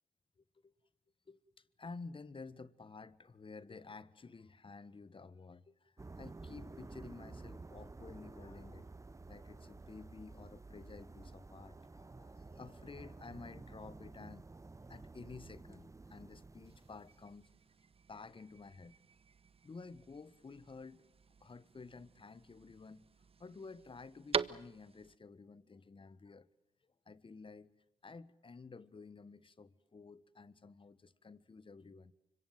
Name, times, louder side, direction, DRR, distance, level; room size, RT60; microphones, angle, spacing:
voice 1, 0.4-0.7 1.3-1.4 1.8-8.9 9.3-14.5 14.9-17.5 18.1-18.9 19.6-21.1 21.4-23.1 23.4-26.5 27.0-27.7 28.0-32.1, left 4 dB, 40° left, 1.4 m, -52 dB
sound 1, 6.0-17.4, right 3 dB, 25° right, 0.8 m, -52 dB
sound 2, 16.7-25.2, right 6 dB, 45° right, 0.9 m, -45 dB
25.5 x 23.0 x 7.6 m
supercardioid pair, 50°, 14 cm